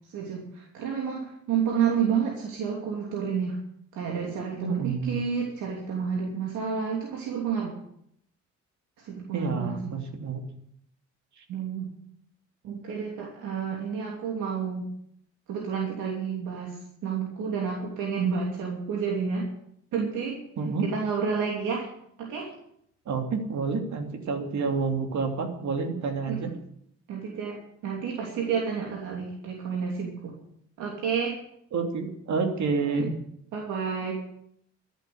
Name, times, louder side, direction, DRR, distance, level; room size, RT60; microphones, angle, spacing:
voice 1, 0.1-3.6 3.9-7.8 9.0-10.0 11.5-11.9 12.6-14.9 15.5-19.5 19.9-20.5 20.8-21.9 22.2-22.5 26.3-26.5 27.1-30.3 30.8-31.4 32.8-33.1 33.5-34.1, right 6 dB, 85° right, -1 dB, 3.0 m, -30 dB
voice 2, 4.6-5.2 9.3-10.4 11.4-11.5 20.6-20.9 23.1-26.5 31.7-33.1, right 4 dB, 70° right, 4 dB, 3.0 m, -29 dB
13.5 x 8.4 x 9.4 m, 0.70 s
cardioid pair, 90°, 30 cm